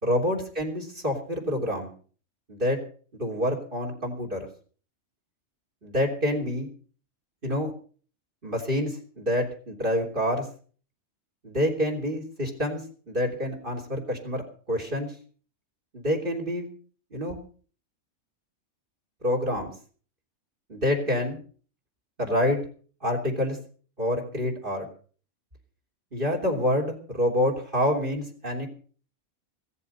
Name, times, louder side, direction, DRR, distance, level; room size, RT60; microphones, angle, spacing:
voice 1, 0.0-1.9 2.5-2.8 3.2-4.4 5.8-6.7 7.4-7.7 8.4-10.5 11.4-14.4 14.7-15.1 15.9-16.7 17.1-17.4 19.2-19.7 20.7-21.4 22.2-22.6 23.0-23.6 24.0-24.9 26.1-28.7, left 1 dB, 35° right, 3 dB, 3.5 m, -27 dB
17.0 x 14.0 x 5.5 m, 0.42 s
omnidirectional pair, 1.5 m